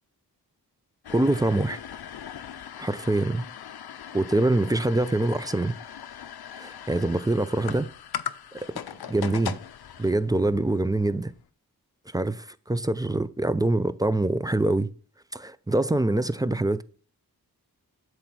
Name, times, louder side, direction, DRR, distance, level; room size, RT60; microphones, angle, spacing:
sound 1, 1.0-11.4, left 9 dB, 70° left, 0.5 m, -39 dB
voice 1, 1.1-1.8 2.8-3.5 4.1-5.7 6.6-7.9 9.1-9.6 10.0-11.3 12.1-14.9 15.3-16.8, right 2 dB, 10° right, 0.4 m, -24 dB
8.1 x 3.4 x 6.1 m
cardioid pair, 45°, 39 cm